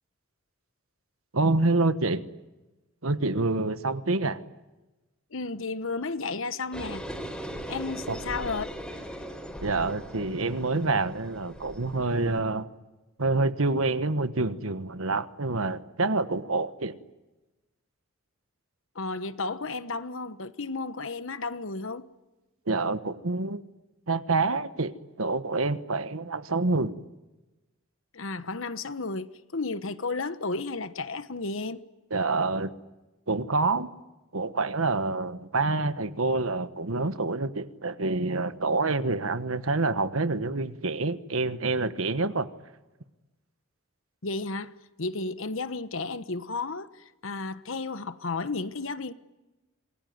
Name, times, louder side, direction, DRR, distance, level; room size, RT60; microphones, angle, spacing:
voice 1, 1.3-2.2 3.0-4.4 8.1-8.2 9.6-12.7 13.2-16.9 22.7-23.6 24.1-24.9 25.2-26.9 32.1-32.7 33.3-33.9 34.3-42.5, right 3 dB, 80° right, 1.3 m, -27 dB
voice 2, 5.3-7.0 7.7-8.7 18.9-22.0 28.1-31.8 44.2-49.1, left 3 dB, 70° left, 1.2 m, -33 dB
sound 1, 6.7-12.4, equal, 5° left, 4.3 m, -39 dB
27.0 x 22.0 x 9.4 m
head